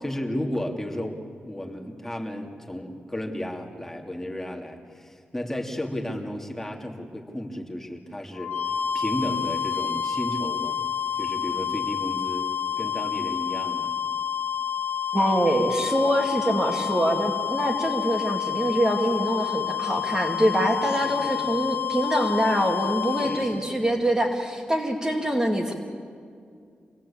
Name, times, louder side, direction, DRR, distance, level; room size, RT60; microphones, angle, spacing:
voice 1, 0.0-10.8 11.1-12.5 12.8-13.9 21.0-21.5 23.2-23.7, left 1 dB, 10° left, 1 dB, 2.8 m, -33 dB
sound 1, 8.3-23.6, left 9 dB, 85° left, 1.7 m, -29 dB
voice 2, 15.1-25.7, equal, 15° right, 3 dB, 2.3 m, -24 dB
26.5 x 18.5 x 8.7 m, 2.3 s
cardioid pair, 85°, 4 cm